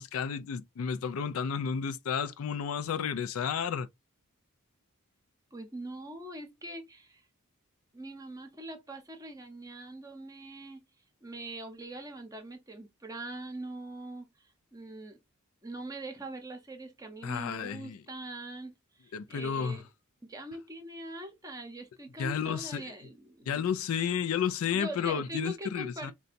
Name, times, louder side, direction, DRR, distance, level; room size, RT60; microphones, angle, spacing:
voice 1, 0.0-3.9 17.2-18.0 19.1-19.8 22.2-22.8 23.5-26.1, left 7 dB, 70° left, 0.4 m, -32 dB
voice 2, 5.5-7.2 7.9-10.8 11.2-15.2 15.6-19.8 20.2-23.7 24.7-26.1, right 2 dB, 15° right, 0.7 m, -43 dB
4.0 x 2.2 x 2.5 m
head